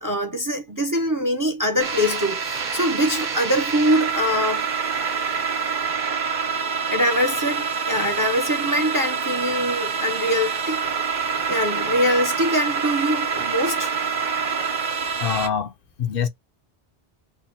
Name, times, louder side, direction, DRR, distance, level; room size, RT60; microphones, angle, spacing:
voice 1, 0.0-4.7 6.9-10.8 11.2-13.9, equal, 30° right, 0.4 m, -23 dB
sound 1, 1.8-15.5, right 6 dB, 55° right, 0.7 m, -26 dB
voice 2, 15.2-15.7 16.0-16.3, left 7 dB, 65° left, 0.8 m, -24 dB
2.7 x 2.2 x 4.0 m
omnidirectional pair, 1.0 m